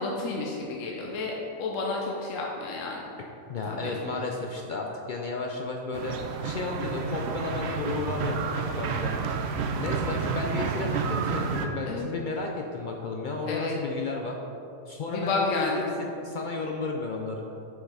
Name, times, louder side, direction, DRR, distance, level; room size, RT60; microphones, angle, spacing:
voice 1, 0.0-3.0 3.7-4.2 11.9-12.1 13.5-13.8 15.1-15.8, left 3 dB, 65° left, -2 dB, 1.1 m, -31 dB
voice 2, 3.2-6.2 6.4-14.4 14.9-17.4, left 3 dB, 85° left, 0 dB, 0.4 m, -33 dB
sound 1, 5.9-11.7, right 5 dB, 65° right, 0.7 m, -30 dB
6.6 x 5.2 x 4.9 m, 2.9 s
omnidirectional pair, 1.5 m